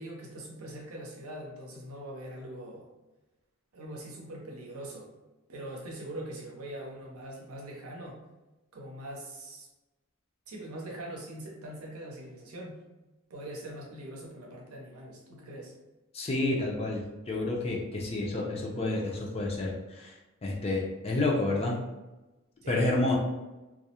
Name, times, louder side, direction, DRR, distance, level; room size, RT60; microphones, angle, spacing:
voice 1, 0.0-2.9 3.7-5.1 5.5-8.2 8.7-9.7 10.5-12.8 13.3-15.7 22.6-23.2, right 1 dB, 85° right, -1 dB, 0.6 m, -42 dB
voice 2, 16.1-20.1 20.4-21.7 22.7-23.2, left 2 dB, 30° left, -2 dB, 0.4 m, -29 dB
2.3 x 2.0 x 2.8 m, 1.1 s
head